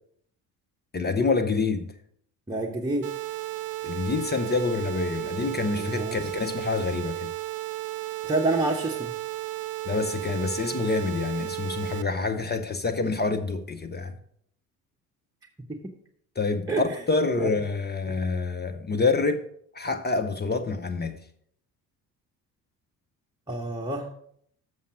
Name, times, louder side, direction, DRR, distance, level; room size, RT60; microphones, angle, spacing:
voice 1, 0.9-1.9 3.8-7.3 9.9-14.2 16.4-19.5 19.7-21.2, left 4 dB, 20° left, 0.8 m, -27 dB
voice 2, 2.5-3.1 5.8-6.1 8.2-9.1 15.7-15.9 16.7-16.8 17.4-17.5 18.1-18.2 23.5-24.1, right 2 dB, 10° right, 1.1 m, -28 dB
sound 1, 3.0-12.0, right 16 dB, 75° right, 0.5 m, -34 dB
7.1 x 6.1 x 6.1 m
hypercardioid pair, 55°, 48 cm